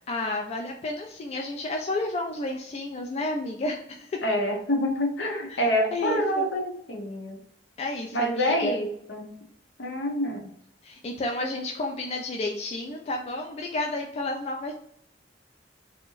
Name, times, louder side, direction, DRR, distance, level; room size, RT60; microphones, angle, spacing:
voice 1, 0.1-4.2 5.5-5.6 5.9-6.5 7.8-8.8 10.8-14.7, left 2 dB, 35° left, 2 dB, 0.3 m, -31 dB
voice 2, 4.2-7.4 8.1-9.4 9.8-10.5, equal, 75° left, 3 dB, 0.7 m, -27 dB
3.3 x 2.1 x 3.1 m, 0.71 s
head